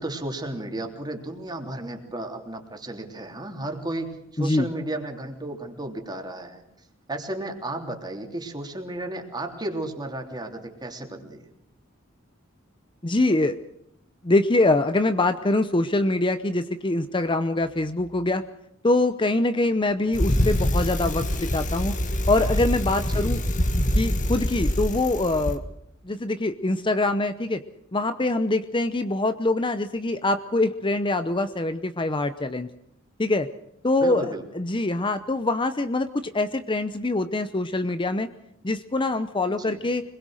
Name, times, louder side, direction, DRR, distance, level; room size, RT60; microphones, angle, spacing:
voice 1, 0.0-6.6 7.1-11.4 23.1-23.3 34.0-34.4 39.6-39.8, right 1 dB, 20° right, 3 dB, 3.3 m, -33 dB
voice 2, 4.4-4.7 13.0-13.5 14.2-18.4 18.8-22.0 22.3-23.4 23.9-25.6 26.1-27.6 27.9-32.7 33.2-33.5 33.8-34.3 34.6-38.3 38.6-40.0, left 2 dB, 25° left, 10 dB, 0.8 m, -24 dB
Bicycle, 20.1-25.6, left 1 dB, 40° left, 2.0 m, -25 dB
26.5 x 21.0 x 6.5 m, 0.74 s
head